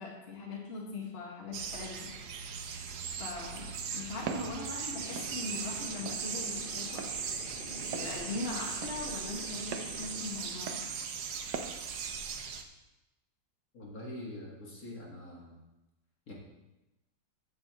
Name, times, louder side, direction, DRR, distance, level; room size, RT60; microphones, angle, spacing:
voice 1, 0.0-2.2 3.2-7.0 7.6-10.8, left 3 dB, 35° left, -2 dB, 1.9 m, -40 dB
sound 1, 1.5-12.6, right 6 dB, 90° right, 1.5 m, -39 dB
Walk footsteps, 4.3-4.5 5.2-5.3 6.1-6.2 7.0-7.2 7.9-8.1 8.8-9.0 9.7-9.9 10.7-10.9 11.5-11.7, right 6 dB, 70° right, 1.3 m, -38 dB
sound 2, 4.9-10.2, right 3 dB, 35° right, 1.1 m, -43 dB
voice 2, 13.7-15.6 16.3-16.4, left 1 dB, 55° left, -3 dB, 2.2 m, -44 dB
14.5 x 8.0 x 3.0 m, 1.0 s
omnidirectional pair, 1.9 m